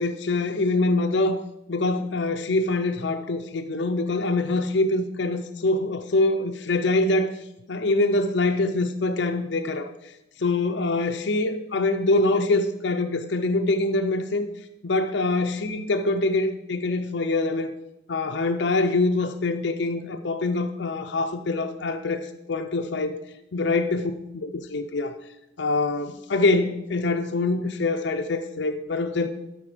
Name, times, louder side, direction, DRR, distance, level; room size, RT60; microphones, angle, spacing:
voice 1, 0.0-1.4 1.7-7.4 7.7-9.9 10.4-14.5 14.8-17.8 18.1-23.2 23.5-25.2 25.6-29.3, left 2 dB, 65° left, 6 dB, 0.6 m, -24 dB
12.5 x 5.3 x 5.0 m, 0.88 s
head